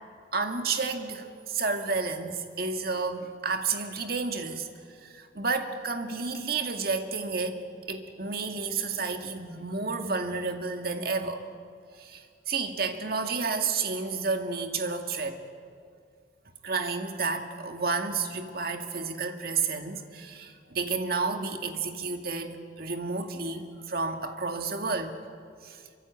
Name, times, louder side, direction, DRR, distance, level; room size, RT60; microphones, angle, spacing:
voice 1, 0.3-4.7 5.0-7.6 7.9-11.4 12.0-15.4 16.6-25.1 25.6-25.8, right 4 dB, 55° right, 5 dB, 2.2 m, -31 dB
26.5 x 24.0 x 8.5 m, 2.1 s
head